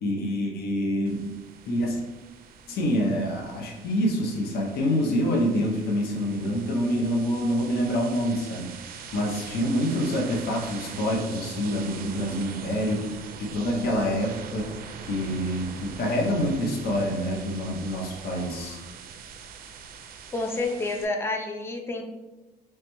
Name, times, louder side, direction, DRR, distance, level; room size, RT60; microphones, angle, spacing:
voice 1, 0.0-1.2 1.7-2.0 2.7-8.7 9.1-13.1 13.4-14.7 15.0-18.8, equal, 65° left, 0 dB, 0.7 m, -26 dB
sound 1, 1.1-21.1, right 6 dB, 60° right, 0.4 m, -43 dB
voice 2, 20.3-22.0, left 2 dB, 15° left, 3 dB, 0.4 m, -29 dB
3.2 x 3.1 x 3.0 m, 1.1 s
cardioid pair, 110°, 17 cm